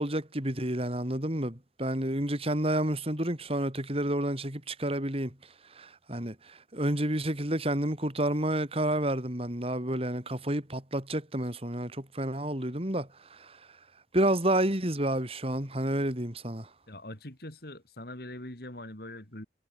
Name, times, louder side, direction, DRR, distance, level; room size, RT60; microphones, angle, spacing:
voice 1, 0.0-5.4 5.7-13.6 14.1-16.7, right 1 dB, 35° right, 3.9 m, -30 dB
voice 2, 16.9-19.5, left 1 dB, 60° left, 5.1 m, -42 dB
head